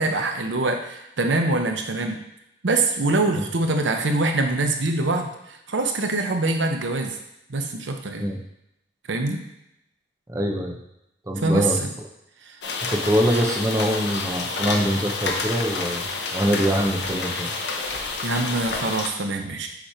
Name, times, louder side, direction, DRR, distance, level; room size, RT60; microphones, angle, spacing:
voice 1, 0.0-2.2 2.6-7.2 7.5-8.3 9.1-9.4 11.4-11.9 12.4-12.6 13.3-13.4 18.2-19.7, right 2 dB, 80° right, 5 dB, 0.7 m, -24 dB
voice 2, 10.3-10.8 11.3-11.8 12.8-17.5, equal, 15° right, 0 dB, 0.6 m, -24 dB
sound 1, 12.6-19.1, left 3 dB, 65° left, 0.8 m, -29 dB
7.1 x 3.1 x 4.3 m, 0.84 s
head